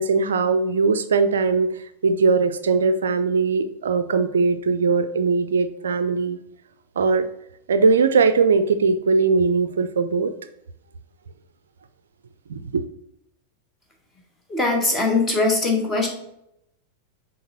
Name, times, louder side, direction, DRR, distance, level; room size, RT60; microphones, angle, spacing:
voice 1, 0.0-6.4 7.0-7.3 7.7-10.3 12.5-12.8, right 4 dB, 65° right, 11 dB, 0.4 m, -20 dB
voice 2, 14.5-16.1, left 3 dB, 15° left, 1 dB, 1.6 m, -21 dB
6.4 x 3.9 x 4.2 m, 0.78 s
figure-of-eight pair, 90°, 0 cm